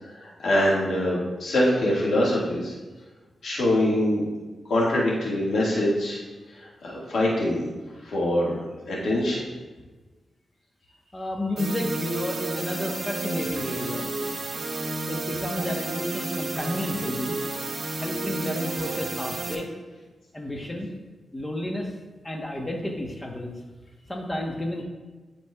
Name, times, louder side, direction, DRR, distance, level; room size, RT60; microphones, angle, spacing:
voice 1, 0.2-2.7 3.4-4.2 4.7-6.2 6.8-7.7 8.0-8.6 8.9-9.5, left 1 dB, 80° left, -5 dB, 1.7 m, -24 dB
voice 2, 11.1-14.4 15.1-17.4 18.0-19.7 20.3-20.9 21.3-21.9 22.2-23.6 24.1-24.8, left 1 dB, 20° left, 0 dB, 1.0 m, -31 dB
sound 1, 11.6-19.6, right 2 dB, 55° right, 0.9 m, -31 dB
11.0 x 4.3 x 2.3 m, 1.2 s
cardioid pair, 80°, 0 cm